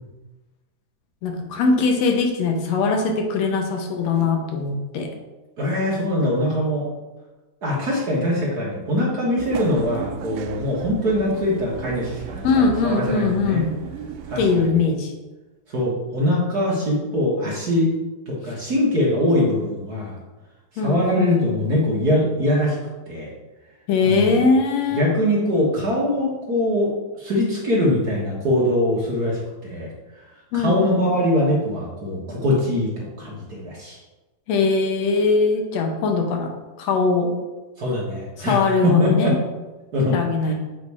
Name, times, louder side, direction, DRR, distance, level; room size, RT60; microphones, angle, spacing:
voice 1, 1.2-5.1 12.4-13.7 14.4-15.1 20.8-21.4 23.9-25.0 30.5-31.2 34.5-36.5 36.8-37.3 38.5-39.3 40.1-40.5, left 4 dB, 70° left, 3 dB, 1.8 m, -21 dB
voice 2, 5.6-6.8 7.6-13.6 14.3-14.8 15.7-17.9 18.3-20.2 20.7-22.8 23.1-23.3 24.0-24.4 24.9-26.9 27.2-29.9 30.5-34.0 37.8-39.4 39.9-40.5, left 1 dB, 55° right, -5 dB, 1.1 m, -22 dB
sound 1, 9.4-14.7, right 7 dB, 85° right, 2.0 m, -35 dB
8.4 x 3.2 x 4.7 m, 1.1 s
omnidirectional pair, 3.4 m